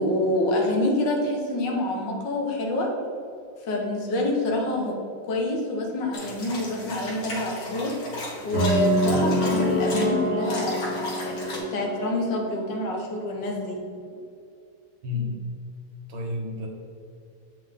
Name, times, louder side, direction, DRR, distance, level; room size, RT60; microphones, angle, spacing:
voice 1, 0.0-2.9 3.7-5.0 5.2-7.9 8.4-13.8, left 1 dB, 65° left, 0 dB, 1.9 m, -27 dB
sound 1, 6.1-10.0 10.4-11.6, left 2 dB, 90° left, 2.6 m, -36 dB
sound 2, 8.5-12.7, equal, 30° right, 2.0 m, -26 dB
voice 2, 15.0-15.4 16.1-16.7, left 3 dB, 85° right, 0 dB, 2.2 m, -30 dB
8.1 x 6.0 x 3.8 m, 2.5 s
omnidirectional pair, 2.2 m